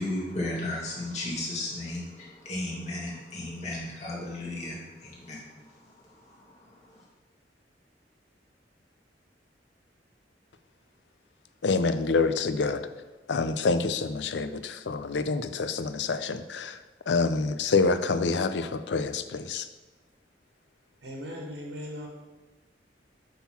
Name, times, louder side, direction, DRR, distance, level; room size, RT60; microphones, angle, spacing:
voice 1, 0.0-5.4, left 1 dB, 40° left, -5 dB, 2.1 m, -34 dB
voice 2, 11.6-12.8 13.3-16.8 17.1-19.7, left 4 dB, 80° left, 12 dB, 0.5 m, -27 dB
voice 3, 21.0-22.1, equal, 75° right, 0 dB, 1.4 m, -38 dB
8.4 x 3.8 x 5.8 m, 1.2 s
head